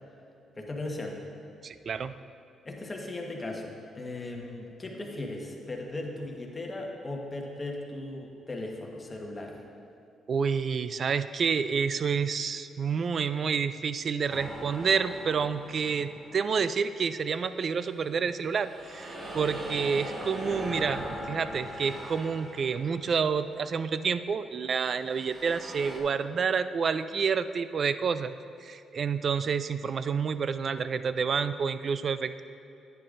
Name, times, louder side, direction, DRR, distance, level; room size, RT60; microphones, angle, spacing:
voice 1, 0.6-1.2 2.6-9.6, left 2 dB, 25° left, 0 dB, 1.3 m, -37 dB
voice 2, 1.6-2.1 10.3-28.3 28.6-32.4, right 6 dB, 50° right, 12 dB, 0.3 m, -29 dB
sound 1, 14.3-16.8 17.3-23.8 24.9-26.0, equal, 35° right, 1.6 m, -40 dB
10.5 x 9.5 x 2.6 m, 2.8 s
cardioid pair, 90°, 0 cm